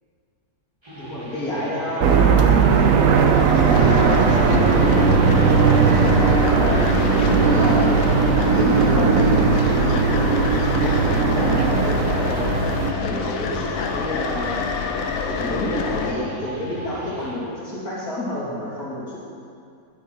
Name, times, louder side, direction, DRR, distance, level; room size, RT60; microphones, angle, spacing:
sound 1, 0.8-17.3, equal, 20° right, 2.1 m, -35 dB
voice 1, 1.0-5.4 5.9-6.9 7.2-8.0 8.5-12.5 13.0-14.6 15.3-19.2, left 1 dB, 90° left, -7 dB, 3.1 m, -29 dB
sound 2, 2.0-12.9, right 6 dB, 70° right, 1.0 m, -18 dB
sound 3, 3.1-16.1, left 5 dB, 75° left, 1.1 m, -26 dB
12.0 x 7.1 x 4.5 m, 2.4 s
omnidirectional pair, 1.5 m